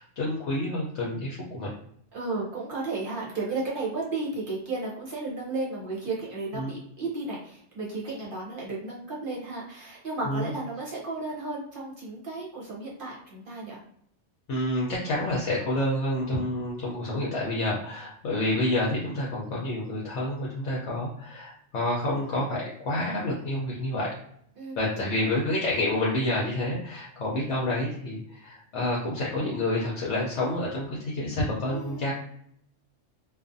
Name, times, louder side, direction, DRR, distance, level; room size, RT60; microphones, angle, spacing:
voice 1, 0.0-1.7 6.5-6.7 10.3-10.5 14.5-24.1 24.8-32.1, left 1 dB, 70° left, -5 dB, 0.9 m, -28 dB
voice 2, 2.1-13.8 24.6-24.8 25.0-25.4 31.7-32.1, right 3 dB, 50° right, -4 dB, 0.8 m, -34 dB
2.5 x 2.3 x 2.5 m, 0.68 s
omnidirectional pair, 1.3 m